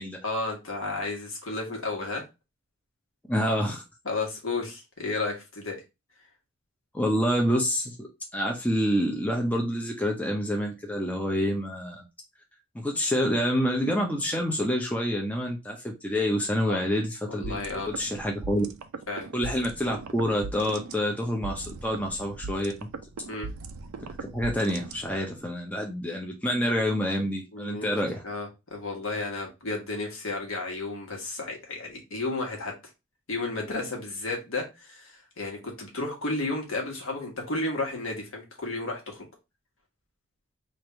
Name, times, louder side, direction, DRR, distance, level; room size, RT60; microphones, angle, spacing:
voice 1, 0.2-2.2 4.0-5.8 16.7-16.8 17.3-17.9 19.1-19.3 23.3-23.5 27.5-27.9 28.2-32.7 33.3-39.2, left 3 dB, 70° left, 1.5 m, -32 dB
voice 2, 3.3-3.8 6.9-12.0 12.7-18.7 19.3-22.7 24.3-28.2, equal, 5° left, 0.6 m, -27 dB
sound 1, 17.4-25.4, right 4 dB, 80° right, 0.5 m, -39 dB
3.2 x 2.6 x 4.4 m
head